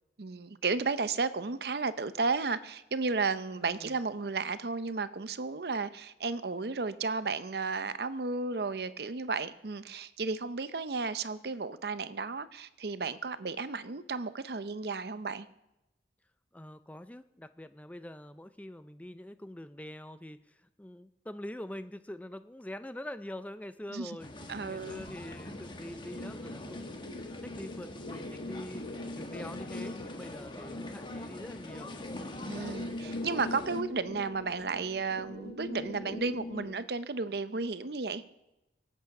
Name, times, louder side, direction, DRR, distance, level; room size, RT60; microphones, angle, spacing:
voice 1, 0.2-15.5 23.9-24.2 24.5-25.0 32.5-38.2, right 4 dB, 60° right, 0.7 m, -33 dB
voice 2, 3.6-3.9 16.5-24.3 24.7-27.0 27.4-28.9 29.1-32.0, left 1 dB, 10° left, 0.4 m, -44 dB
sound 1, 24.2-33.8, left 1 dB, 25° left, 1.2 m, -44 dB
sound 2, 25.3-36.7, left 2 dB, 60° left, 1.4 m, -42 dB
24.5 x 8.3 x 5.9 m
head